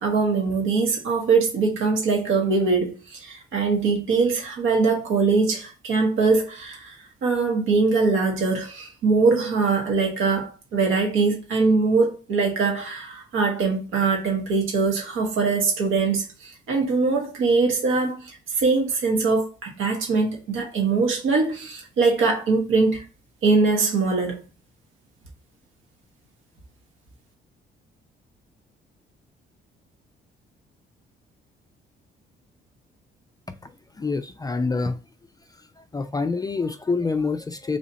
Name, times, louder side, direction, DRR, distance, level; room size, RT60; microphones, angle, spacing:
voice 1, 0.0-7.0 7.2-23.0 23.4-24.4, right 4 dB, 85° right, 1.3 m, -22 dB
voice 2, 34.0-35.0 35.8-37.8, left 4 dB, 20° left, 0.3 m, -26 dB
3.1 x 2.7 x 4.0 m
cardioid pair, 90°, 20 cm